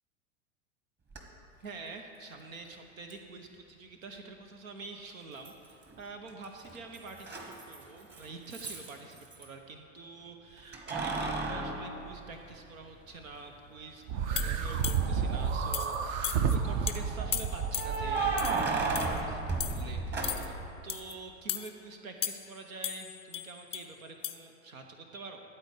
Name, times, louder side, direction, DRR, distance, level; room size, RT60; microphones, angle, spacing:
Keys jangling, 1.1-1.2 3.1-3.2 5.4-6.0 6.3-9.5 10.7-12.8 13.3-13.4 15.2-15.8 17.7-20.7, right 3 dB, 25° right, 1.5 m, -34 dB
voice 1, 1.6-25.4, right 3 dB, 80° right, 4 dB, 1.0 m, -47 dB
sound 1, 14.1-19.2, right 6 dB, 50° right, 0.8 m, -31 dB
sound 2, 14.4-15.2 15.7-16.0 16.2-16.6 16.9-17.0 17.3-18.0 18.4-18.6 19.0-19.2 19.6-19.8 20.2-20.5 20.9-21.1 21.5-21.7 22.2-22.6 22.8-23.9 24.2-24.4, left 9 dB, 15° left, 0.4 m, -36 dB
13.0 x 4.4 x 8.1 m, 2.6 s
hypercardioid pair, 90°, 40 cm